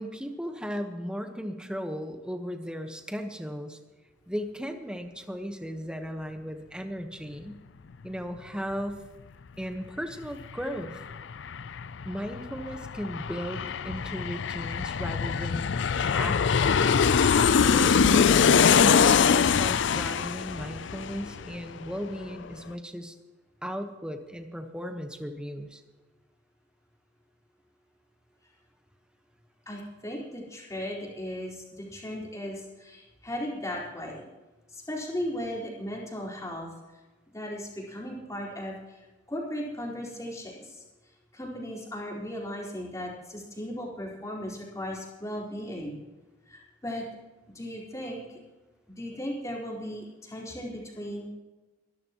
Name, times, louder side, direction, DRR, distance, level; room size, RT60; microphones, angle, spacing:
voice 1, 0.0-3.8 4.3-7.6 8.0-9.0 9.6-11.0 12.0-15.7 16.0-17.1 17.7-23.1 23.6-25.8, equal, 5° right, 6 dB, 1.2 m, -36 dB
Aircraft, 10.2-10.3 10.6-21.9 22.2-22.3, left 6 dB, 70° left, 0.5 m, -23 dB
voice 2, 29.7-34.3 34.7-36.7 37.3-39.0 39.3-40.8 41.3-46.0 46.5-47.0 47.5-48.4 49.0-51.3, equal, 20° left, -4 dB, 4.4 m, -36 dB
23.5 x 13.0 x 3.0 m, 1.2 s
head